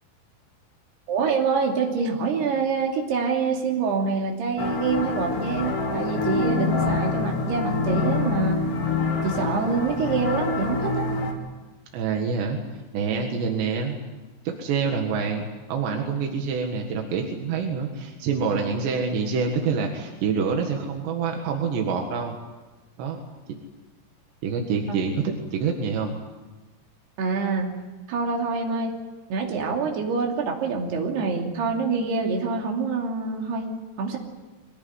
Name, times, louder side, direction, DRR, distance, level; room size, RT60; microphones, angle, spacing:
voice 1, 1.1-8.6 9.2-11.1 24.9-25.0 27.2-27.8 28.1-29.0 29.3-33.7 34.0-34.2, right 5 dB, 70° right, 1 dB, 4.8 m, -26 dB
sound 1, 4.6-11.3, left 4 dB, 90° left, 4.5 m, -26 dB
voice 2, 11.9-12.6 12.9-14.0 14.5-22.4 23.0-23.2 24.4-26.2, right 5 dB, 90° right, 2 dB, 4.0 m, -26 dB
23.0 x 18.0 x 9.6 m, 1.2 s
omnidirectional pair, 4.8 m